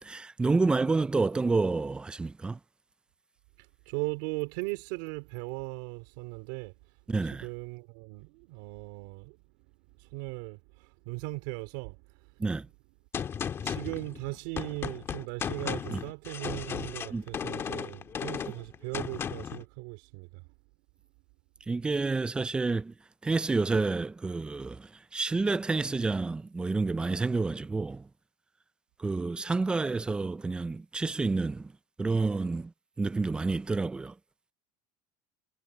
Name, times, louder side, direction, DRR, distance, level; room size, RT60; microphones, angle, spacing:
voice 1, 0.0-2.6 7.1-7.5 12.4-12.7 15.9-16.0 17.1-17.2 21.7-22.9 23.2-28.1 29.0-31.7 32.0-34.2, right 3 dB, 10° right, 0.4 m, -29 dB
voice 2, 3.6-6.7 7.3-12.4 13.6-20.5, right 26 dB, 75° right, 3.1 m, -38 dB
Gunshot gunfire, 13.1-19.6, left 7 dB, 25° left, 1.6 m, -35 dB
cardioid pair, 155°, 10 cm